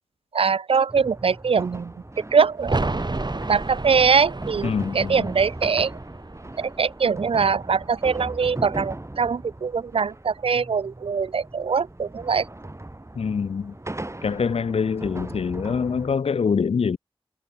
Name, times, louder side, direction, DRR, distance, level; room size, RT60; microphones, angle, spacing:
voice 1, 0.3-1.9 2.3-2.8 3.5-5.9 6.6-12.5, right 5 dB, 65° right, 0.3 m, -22 dB
sound 1, 0.9-16.2, right 1 dB, 30° right, 5.7 m, -38 dB
sound 2, 2.6-8.2 8.4-8.5, right 2 dB, 45° right, 3.0 m, -32 dB
voice 2, 4.6-5.3 13.1-13.8 14.2-17.0, left 6 dB, 80° left, 0.4 m, -25 dB
wide cardioid pair, 65°, 10 cm